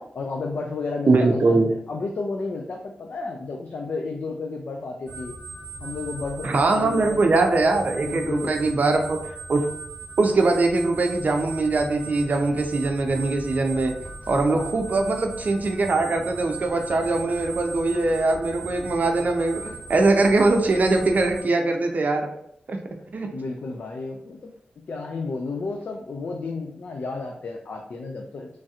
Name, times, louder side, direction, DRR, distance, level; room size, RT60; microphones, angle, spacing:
voice 1, 0.2-1.6 1.9-5.3 5.8-7.2 8.0-8.6 14.5-14.7 23.3-24.5 24.9-28.6, left 3 dB, 70° left, 1 dB, 0.4 m, -32 dB
voice 2, 1.1-1.7 6.4-9.7 10.2-13.9 14.3-22.3 22.7-22.8 23.1-23.3, right 3 dB, 60° right, 4 dB, 0.5 m, -22 dB
sound 1, 5.1-21.4, right 4 dB, 40° left, 1.3 m, -38 dB
3.2 x 2.7 x 2.4 m, 0.72 s
cardioid pair, 65°, 3 cm